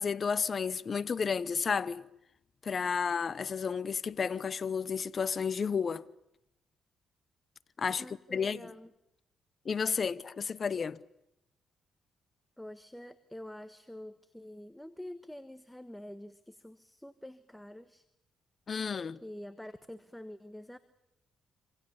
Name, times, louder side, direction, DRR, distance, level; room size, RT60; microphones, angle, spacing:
voice 1, 0.0-2.0 2.6-6.1 7.8-8.0 8.3-8.6 9.6-11.0 18.7-19.2, left 6 dB, 40° left, 0.9 m, -32 dB
voice 2, 8.0-8.9 12.6-18.1 19.2-20.8, left 1 dB, 5° left, 1.4 m, -47 dB
26.5 x 26.5 x 7.1 m
cardioid pair, 90°, 0 cm